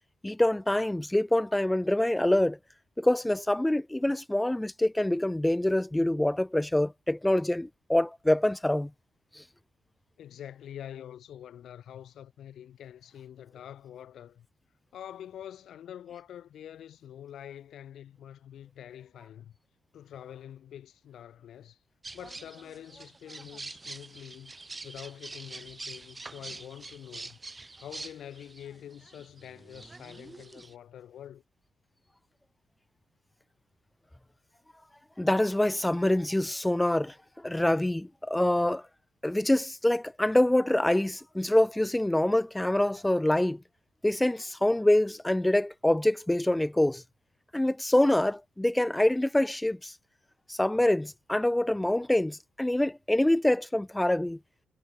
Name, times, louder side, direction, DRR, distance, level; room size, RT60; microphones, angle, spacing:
voice 1, 0.2-2.6 3.0-8.9 9.4-9.5 35.2-38.8 39.2-43.6 44.0-47.0 47.5-49.9 50.5-54.4, left 1 dB, 5° left, 0.5 m, -25 dB
voice 2, 10.2-14.5 14.9-19.5 19.9-21.8 22.1-24.5 24.8-27.4 27.7-31.4, left 10 dB, 65° left, 3.3 m, -46 dB
sound 1, 22.0-30.7, right 3 dB, 15° right, 4.7 m, -45 dB
cardioid pair, 140°, 0 cm